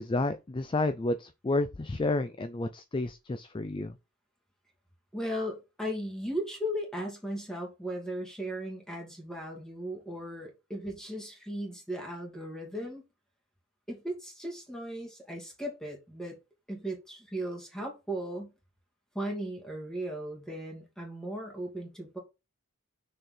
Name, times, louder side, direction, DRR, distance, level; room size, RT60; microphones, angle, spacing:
voice 1, 0.0-3.9, left 2 dB, 25° left, 0.4 m, -30 dB
voice 2, 5.1-13.0 13.9-16.4 16.7-18.5 19.1-22.2, equal, 5° left, 2.4 m, -37 dB
6.5 x 4.4 x 3.8 m
head